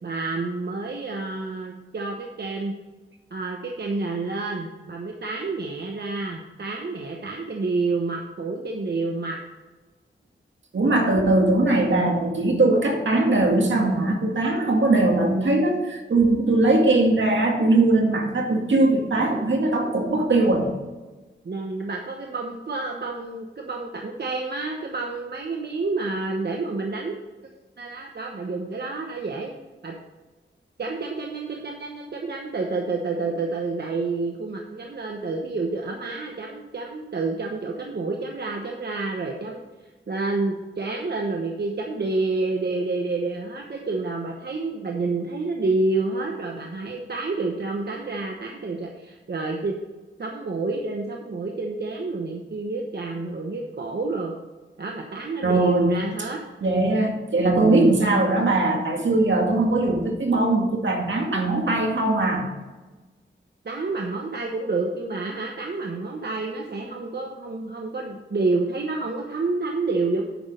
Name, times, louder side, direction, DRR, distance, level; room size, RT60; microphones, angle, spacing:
voice 1, 0.0-2.7 3.3-9.4 21.4-27.2 27.8-29.5 29.8-29.9 30.8-39.6 40.1-49.8 50.2-54.3 54.8-56.4 57.6-58.0 63.6-70.2, right 3 dB, 55° right, 1 dB, 1.0 m, -29 dB
voice 2, 10.7-20.7 55.4-55.9 56.6-62.4, right 2 dB, 75° right, 1 dB, 2.0 m, -20 dB
9.5 x 6.1 x 5.2 m, 1.2 s
wide cardioid pair, 85°, 20 cm